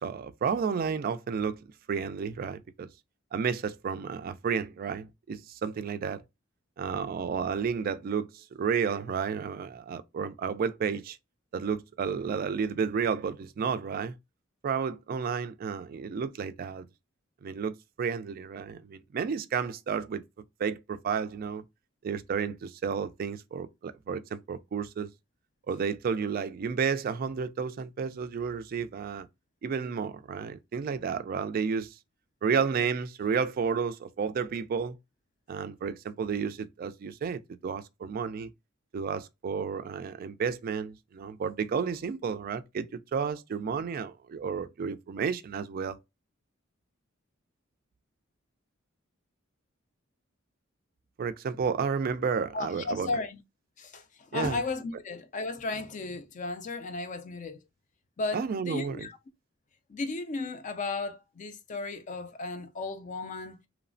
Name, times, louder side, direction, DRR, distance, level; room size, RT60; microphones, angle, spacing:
voice 1, 0.0-1.6 1.9-2.9 3.3-6.2 6.8-11.2 11.5-14.1 14.6-16.9 17.4-20.2 20.6-21.6 22.0-25.1 25.7-29.3 29.6-31.9 32.4-35.0 35.5-38.5 38.9-46.0 51.2-53.1 54.3-54.6 58.3-59.1, right 6 dB, 45° right, 0.3 m, -31 dB
voice 2, 52.5-53.4 53.8-54.0 54.3-57.6 58.2-59.2 59.9-63.6, left 3 dB, 40° left, 0.4 m, -34 dB
3.0 x 2.0 x 2.5 m
head